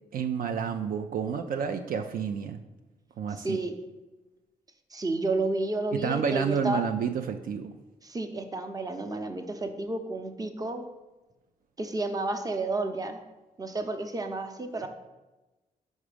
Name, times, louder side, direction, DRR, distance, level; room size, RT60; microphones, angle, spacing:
voice 1, 0.1-2.6 3.2-3.6 5.9-7.7, right 7 dB, 65° right, 6 dB, 0.4 m, -30 dB
voice 2, 3.3-3.7 4.9-6.8 8.0-10.8 11.8-13.2 13.6-14.9, right 2 dB, 25° right, 6 dB, 0.7 m, -31 dB
5.4 x 4.8 x 5.0 m, 1.1 s
cardioid pair, 80°, 15 cm